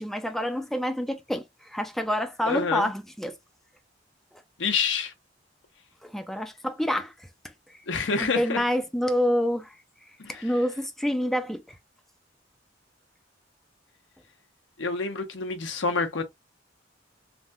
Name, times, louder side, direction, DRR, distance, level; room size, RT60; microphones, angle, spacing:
voice 1, 0.0-3.4 6.0-7.1 8.2-9.8 10.3-11.6, equal, ahead, 0.3 m, -27 dB
voice 2, 2.5-2.9 4.6-5.1 7.9-8.6 10.2-10.4 14.8-16.2, left 4 dB, 80° left, 0.8 m, -27 dB
3.3 x 2.2 x 2.6 m
head